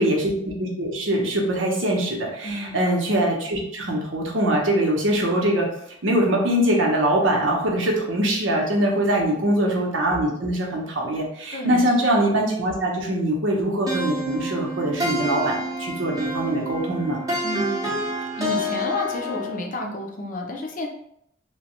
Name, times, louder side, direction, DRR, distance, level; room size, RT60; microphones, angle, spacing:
voice 1, 0.0-5.7 6.0-17.2, right 1 dB, 90° right, -1 dB, 0.8 m, -23 dB
voice 2, 2.4-2.8 9.2-9.5 11.5-11.9 17.4-18.0 18.4-20.9, left 1 dB, 45° left, 2 dB, 0.5 m, -31 dB
sound 1, 13.9-19.6, equal, 20° right, 0.7 m, -28 dB
3.0 x 2.2 x 2.9 m, 0.72 s
head